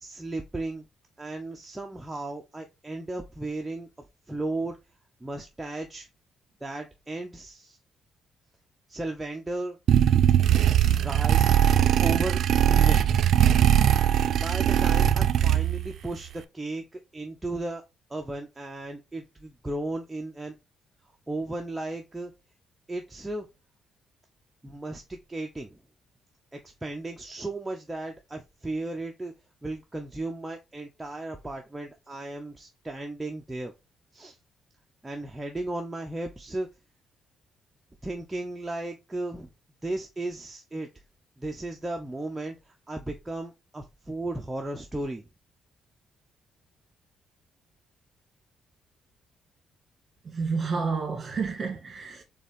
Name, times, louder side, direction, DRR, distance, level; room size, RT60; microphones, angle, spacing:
voice 1, 0.0-0.8 1.2-3.9 4.3-4.8 5.2-6.1 6.6-7.8 8.9-9.8 11.0-11.6 12.0-12.4 12.7-13.3 14.4-17.8 18.1-20.5 21.3-22.3 22.9-23.5 24.6-25.8 26.5-29.3 29.6-33.7 34.1-34.4 35.0-36.7 38.0-39.5 39.8-40.9 41.4-45.2, right 2 dB, 15° right, 0.7 m, -35 dB
sound 1, 9.9-15.9, right 10 dB, 70° right, 0.3 m, -20 dB
voice 2, 50.3-52.2, right 4 dB, 40° right, 1.9 m, -30 dB
4.1 x 3.5 x 3.6 m
cardioid pair, 90°, 0 cm